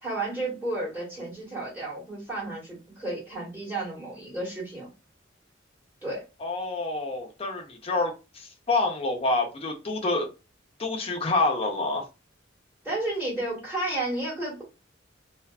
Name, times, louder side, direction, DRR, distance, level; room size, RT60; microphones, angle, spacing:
voice 1, 0.0-4.9 6.0-6.2 12.8-14.6, right 2 dB, 10° right, 1.2 m, -32 dB
voice 2, 6.4-10.3 10.8-12.0, left 2 dB, 30° left, 0.6 m, -27 dB
2.5 x 2.4 x 2.3 m
head